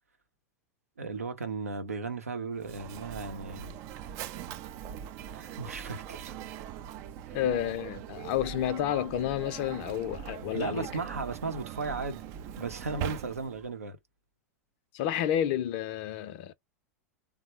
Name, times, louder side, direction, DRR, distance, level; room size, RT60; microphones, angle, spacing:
voice 1, 1.0-3.7 5.3-6.4 7.3-7.4 10.5-12.3 12.6-14.0, right 4 dB, 75° right, 0.7 m, -36 dB
Mechanisms, 2.6-13.7, right 10 dB, 40° right, 0.4 m, -41 dB
voice 2, 7.3-10.9 14.9-16.5, left 11 dB, 45° left, 0.5 m, -30 dB
3.3 x 2.1 x 2.9 m
figure-of-eight pair, 90°, 8 cm